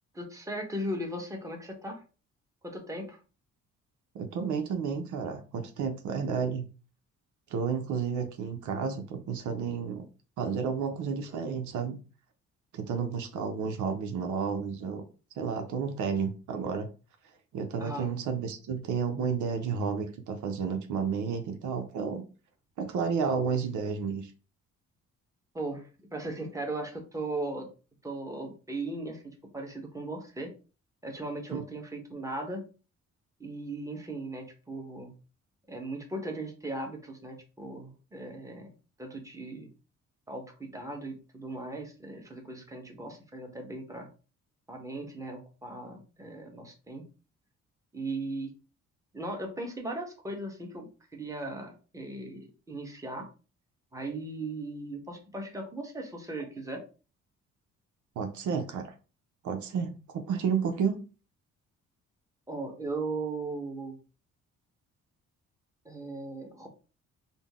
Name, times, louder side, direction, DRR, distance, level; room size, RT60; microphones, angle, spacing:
voice 1, 0.1-2.0 2.6-3.2 17.8-18.1 25.5-27.7 28.0-30.5 31.0-32.7 33.4-35.2 35.7-38.7 39.0-39.7 40.3-44.1 44.7-47.0 47.9-48.5 49.1-53.3 53.9-56.8 62.5-64.0 65.8-66.7, right 2 dB, 10° right, 1.1 m, -38 dB
voice 2, 4.1-6.7 7.5-10.1 10.4-12.0 12.7-15.0 15.4-16.9 17.5-22.2 22.8-24.3 31.5-31.6 58.2-58.9 59.4-61.0, right 6 dB, 75° right, 0.7 m, -31 dB
3.8 x 2.1 x 3.5 m
cardioid pair, 90°, 30 cm